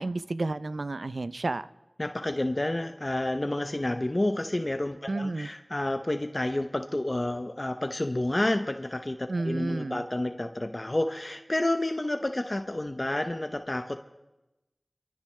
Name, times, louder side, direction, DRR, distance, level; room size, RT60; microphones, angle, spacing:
voice 1, 0.0-1.7 5.1-5.5 9.3-10.0, right 2 dB, 85° right, 13 dB, 0.4 m, -31 dB
voice 2, 2.0-14.0, left 1 dB, 40° left, 7 dB, 0.7 m, -30 dB
25.0 x 13.0 x 3.2 m, 0.98 s
wide cardioid pair, 45°, 0 cm